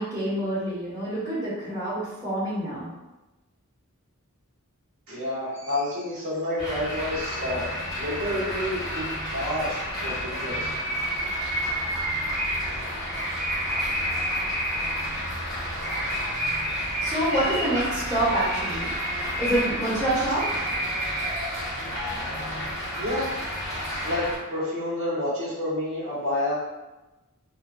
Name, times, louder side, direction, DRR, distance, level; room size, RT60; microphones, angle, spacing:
voice 1, 0.0-2.9 17.0-18.9 19.4-20.6, right 1 dB, 20° right, -12 dB, 1.1 m, -27 dB
voice 2, 5.1-7.6 8.0-9.8 10.0-10.7 22.9-23.3 24.0-26.5, left 1 dB, 60° right, -9 dB, 1.4 m, -29 dB
sound 1, 6.6-24.4, equal, 5° left, 1.0 m, -29 dB
3.1 x 2.2 x 2.5 m, 1.0 s
head